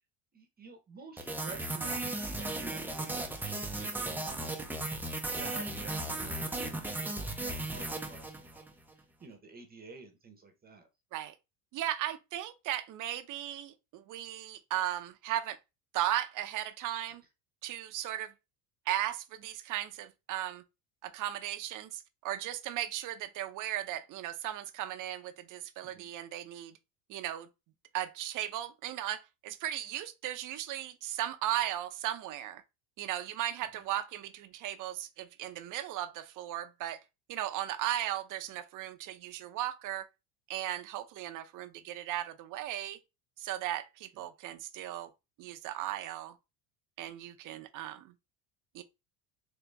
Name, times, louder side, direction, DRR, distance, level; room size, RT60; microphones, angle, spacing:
voice 1, 0.3-10.9 25.8-26.1 33.7-33.8 44.1-44.3, right 4 dB, 20° right, 0.9 m, -51 dB
sound 1, 1.2-8.7, right 2 dB, 5° right, 0.5 m, -36 dB
voice 2, 11.7-15.6 15.9-17.2 17.6-18.3 18.9-20.6 21.0-26.7 27.1-27.5 27.9-32.6 33.0-37.0 37.3-40.1 40.5-43.0 43.4-45.1 45.4-46.3 47.0-48.1 48.7-48.8, right 12 dB, 45° right, 0.7 m, -36 dB
4.0 x 2.8 x 3.4 m
supercardioid pair, 115°, 42 cm